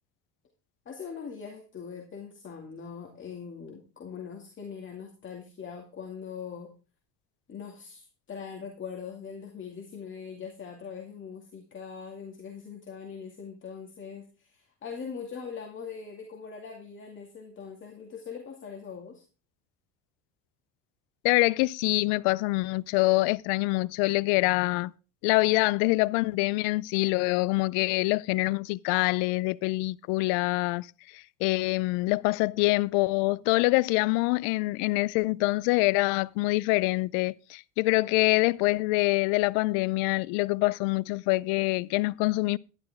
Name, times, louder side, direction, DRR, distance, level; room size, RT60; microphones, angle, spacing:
voice 1, 0.9-6.7 7.5-19.2, left 6 dB, 35° left, 2.3 m, -41 dB
voice 2, 21.2-24.9 25.2-30.9 31.1-42.6, left 22 dB, 85° left, 0.5 m, -25 dB
11.5 x 11.5 x 3.6 m
cardioid pair, 115°, 35 cm